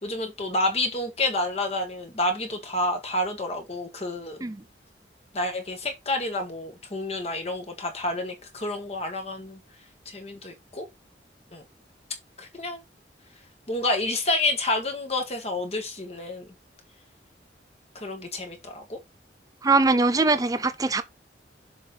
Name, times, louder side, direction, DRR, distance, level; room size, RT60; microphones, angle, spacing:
voice 1, 0.0-4.4 5.3-9.6 10.0-10.9 11.5-11.6 12.4-12.8 13.7-16.5 17.9-19.0, left 2 dB, 35° left, 1.8 m, -29 dB
voice 2, 19.6-21.0, right 3 dB, 20° right, 0.5 m, -22 dB
6.9 x 4.1 x 3.9 m
head